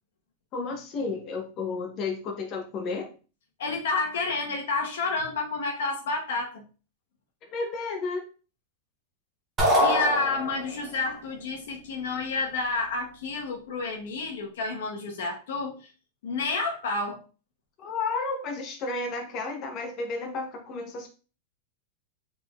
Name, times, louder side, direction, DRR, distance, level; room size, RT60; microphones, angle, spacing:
voice 1, 0.5-3.1 7.5-8.2 17.8-21.1, left 3 dB, 30° left, 3 dB, 0.8 m, -32 dB
voice 2, 3.6-6.6 9.8-15.9 16.2-17.2, left 3 dB, 80° left, 1 dB, 1.2 m, -30 dB
sound 1, 9.6-10.9, equal, 20° right, 1.2 m, -23 dB
3.8 x 3.8 x 2.4 m, 0.35 s
supercardioid pair, 165°, 0 cm